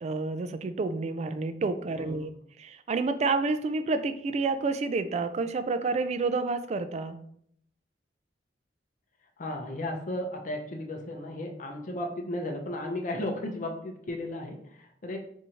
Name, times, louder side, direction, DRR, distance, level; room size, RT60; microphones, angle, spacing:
voice 1, 0.0-2.3 2.6-7.2, right 3 dB, 40° right, 11 dB, 0.3 m, -29 dB
voice 2, 9.4-15.2, left 1 dB, 45° left, 3 dB, 0.6 m, -35 dB
4.8 x 2.7 x 2.8 m, 0.67 s
head